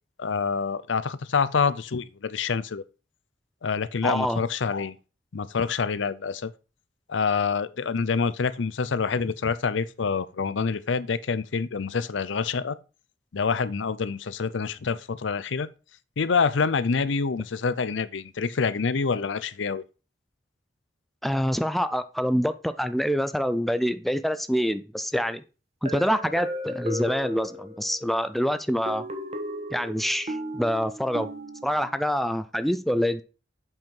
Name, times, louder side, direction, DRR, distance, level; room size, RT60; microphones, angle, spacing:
voice 1, 0.2-2.8 3.6-5.0 5.3-6.5 7.1-12.8 13.3-15.7 16.2-19.8, left 5 dB, 80° left, 0.6 m, -26 dB
voice 2, 4.0-4.4 21.2-25.4 25.8-29.0 29.7-31.3 31.6-33.2, equal, ahead, 0.4 m, -26 dB
sound 1, 25.9-28.1 28.9-32.0, equal, 35° right, 1.2 m, -35 dB
7.8 x 5.5 x 4.5 m
head